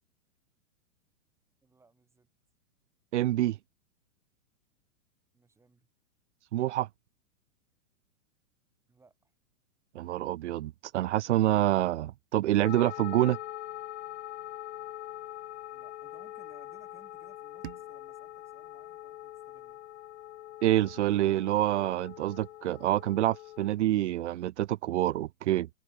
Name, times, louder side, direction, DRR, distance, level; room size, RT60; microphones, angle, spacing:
voice 1, 1.6-2.3 5.3-5.9 8.9-9.3 15.7-19.8, right 4 dB, 5° right, 7.3 m, -63 dB
voice 2, 3.1-3.6 6.5-6.9 9.9-13.4 20.6-25.7, right 14 dB, 55° right, 0.6 m, -27 dB
sound 1, 12.6-23.7, left 14 dB, 50° left, 0.8 m, -43 dB
sound 2, 17.6-20.5, right 17 dB, 40° right, 1.3 m, -52 dB
open air
hypercardioid pair, 165°, 43 cm